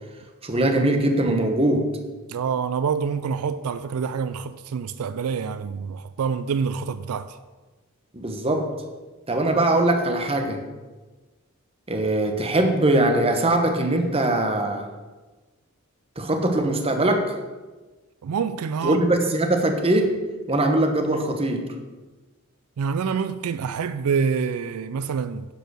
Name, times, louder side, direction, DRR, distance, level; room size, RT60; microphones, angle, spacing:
voice 1, 0.4-1.9 8.1-8.7 9.3-10.6 11.9-14.9 16.2-17.3 18.8-21.7, right 1 dB, 25° right, 1.0 m, -21 dB
voice 2, 2.3-7.4 18.2-19.1 22.8-25.4, right 6 dB, 80° right, 0.4 m, -26 dB
10.5 x 4.6 x 6.2 m
head